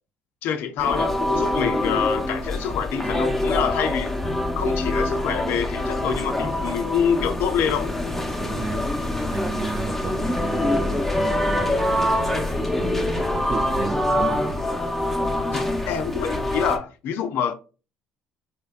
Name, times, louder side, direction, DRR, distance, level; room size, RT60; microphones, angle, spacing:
voice 1, 0.4-4.1 4.6-7.9 15.5-17.5, left 8 dB, 65° left, 0.4 m, -26 dB
sound 1, 0.8-16.8, left 1 dB, 5° left, 0.8 m, -25 dB
Bowed string instrument, 4.2-7.5, left 1 dB, 30° left, 1.0 m, -42 dB
voice 2, 8.4-8.9 9.3-14.6, right 4 dB, 40° right, 0.4 m, -33 dB
3.2 x 3.1 x 2.3 m
hypercardioid pair, 65°, 4 cm